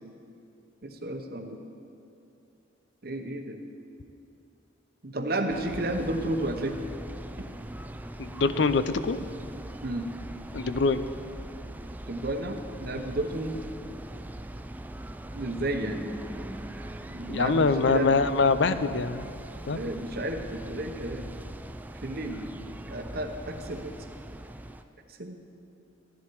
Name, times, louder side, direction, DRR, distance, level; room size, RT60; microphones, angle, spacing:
voice 1, 0.8-1.6 3.0-3.6 5.0-6.7 9.8-10.1 12.1-13.6 15.3-16.0 17.1-18.2 19.7-21.3 22.0-22.5 22.9-23.9 25.1-25.3, right 1 dB, 50° right, 6 dB, 0.9 m, -32 dB
sound 1, 5.5-24.8, right 1 dB, 10° right, 0.3 m, -41 dB
voice 2, 8.2-9.2 10.5-11.0 17.3-19.3 19.7-19.8, left 4 dB, 70° left, 12 dB, 0.5 m, -24 dB
14.0 x 10.5 x 4.6 m, 2.7 s
head